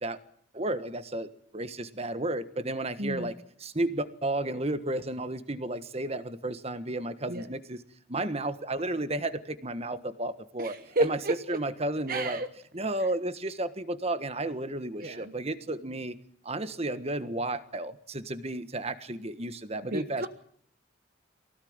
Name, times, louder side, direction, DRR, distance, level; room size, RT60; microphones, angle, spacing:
voice 1, 0.5-7.8 8.1-11.2 11.5-12.4 12.7-16.2 16.4-20.3, right 2 dB, 30° right, 11 dB, 1.5 m, -33 dB
voice 2, 3.0-3.3 7.3-7.5 10.6-11.6 12.1-12.5 15.0-15.3 19.9-20.3, right 2 dB, 50° right, 8 dB, 1.1 m, -31 dB
23.5 x 17.5 x 8.9 m, 0.62 s
head